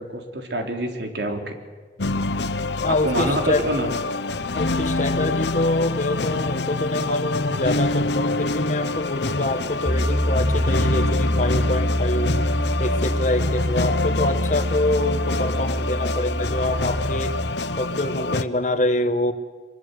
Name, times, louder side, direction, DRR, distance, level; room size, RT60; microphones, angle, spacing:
voice 1, 0.0-1.5 2.9-3.9, right 1 dB, 80° right, 4 dB, 3.6 m, -26 dB
sound 1, 2.0-18.4, left 2 dB, 80° left, 1.0 m, -26 dB
voice 2, 2.8-3.7 4.5-12.4 12.8-17.4 17.8-19.3, left 1 dB, 45° left, 9 dB, 1.6 m, -25 dB
Piano, 9.9-17.5, equal, 10° left, 0.7 m, -25 dB
24.5 x 23.0 x 8.2 m, 1.4 s
head